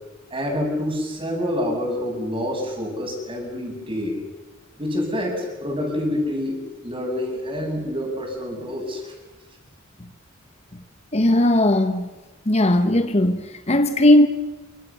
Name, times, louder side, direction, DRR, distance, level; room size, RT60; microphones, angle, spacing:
voice 1, 0.3-4.2 4.8-9.1, left 1 dB, 25° right, 7.0 m, -27 dB
voice 2, 11.1-12.1 12.5-14.3, left 1 dB, 30° left, 1.3 m, -17 dB
27.5 x 25.5 x 7.0 m
head